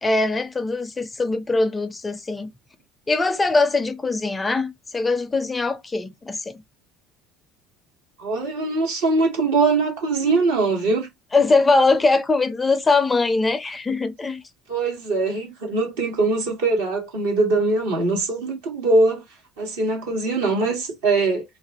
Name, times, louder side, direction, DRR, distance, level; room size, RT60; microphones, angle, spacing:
voice 1, 0.0-2.5 3.1-6.6 11.3-14.4, left 3 dB, 20° left, 0.4 m, -21 dB
voice 2, 8.2-11.1 14.7-19.2 19.6-21.4, right 3 dB, 75° right, 1.2 m, -22 dB
2.4 x 2.0 x 2.8 m
hypercardioid pair, 65°, 0 cm